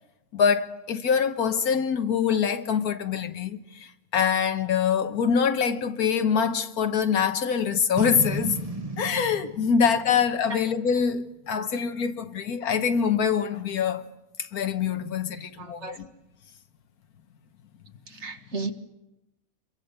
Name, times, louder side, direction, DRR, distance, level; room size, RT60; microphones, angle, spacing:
voice 1, 0.3-8.6 9.0-14.1 14.4-16.1, left 7 dB, 80° left, 1.6 m, -24 dB
Boom, 8.0-11.3, right 1 dB, 25° right, 1.3 m, -34 dB
voice 2, 15.6-16.0 18.1-18.7, right 4 dB, 50° right, 1.8 m, -34 dB
27.0 x 23.0 x 6.6 m
omnidirectional pair, 1.6 m